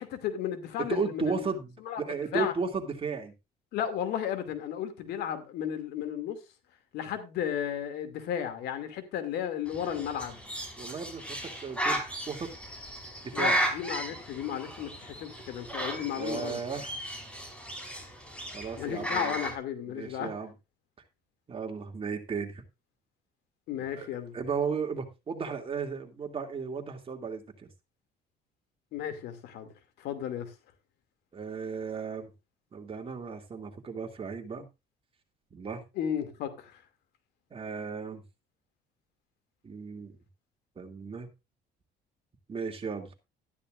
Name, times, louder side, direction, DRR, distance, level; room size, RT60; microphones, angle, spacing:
voice 1, 0.0-1.4 1.9-2.0 2.3-2.5 3.7-6.4 6.9-10.4 13.3-16.6 18.8-20.3 23.7-24.3 28.9-29.7 30.0-30.5 36.0-36.8, left 9 dB, 80° left, 2.5 m, -34 dB
voice 2, 0.9-3.3 10.8-12.5 13.2-13.6 16.2-16.9 18.5-19.4 19.9-20.5 21.5-22.6 23.9-24.1 24.3-27.7 31.3-32.3 32.7-34.7 35.5-35.8 37.5-38.2 39.6-40.2 40.8-41.3 42.5-43.1, right 5 dB, 35° right, 2.7 m, -35 dB
Bird, 9.7-19.6, right 1 dB, 5° left, 4.6 m, -35 dB
13.0 x 11.5 x 2.5 m
cardioid pair, 110°, 17 cm